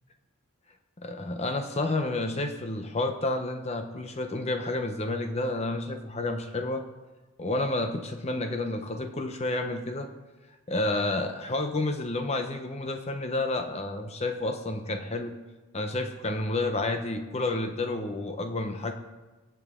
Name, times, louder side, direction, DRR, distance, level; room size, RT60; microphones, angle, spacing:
voice 1, 1.0-6.8 7.4-10.1 10.7-15.3 15.7-18.9, left 2 dB, 30° left, 5 dB, 0.9 m, -30 dB
24.5 x 8.2 x 3.7 m, 1.2 s
head